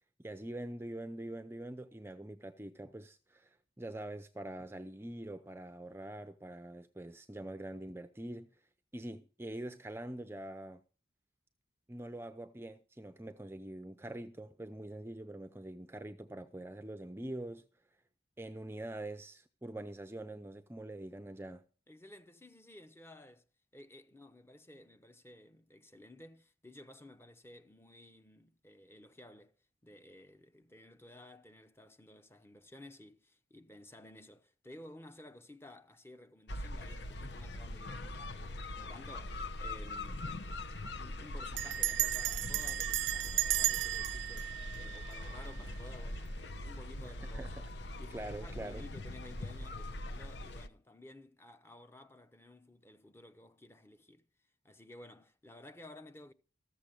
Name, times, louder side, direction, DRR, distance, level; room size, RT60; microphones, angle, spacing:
voice 1, 0.2-8.6 8.9-10.8 11.9-17.7 18.4-21.7 47.0-47.7 48.1-48.8, right 1 dB, 15° right, 0.5 m, -44 dB
voice 2, 21.9-23.5 23.7-29.5 29.8-40.3 40.9-47.6 47.9-54.3 54.6-56.3, left 1 dB, 15° left, 0.8 m, -55 dB
sound 1, 36.5-50.7, left 1 dB, 65° left, 0.9 m, -42 dB
Bell, 39.4-39.8 40.1-40.2 40.4-40.8 41.6-45.7, right 14 dB, 85° right, 0.5 m, -34 dB
14.0 x 7.4 x 6.6 m
head